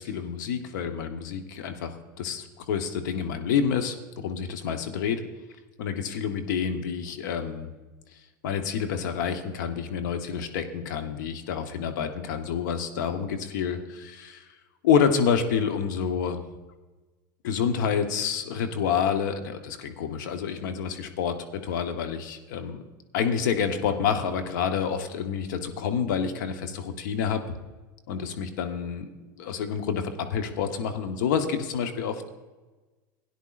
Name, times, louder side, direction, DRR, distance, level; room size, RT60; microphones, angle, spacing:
voice 1, 0.0-5.2 5.8-7.7 8.4-14.5 14.8-16.4 17.4-22.8 23.1-27.4 28.1-32.2, left 7 dB, 65° left, 6 dB, 1.1 m, -28 dB
17.0 x 10.0 x 2.5 m, 1.2 s
hypercardioid pair, 90°, 11 cm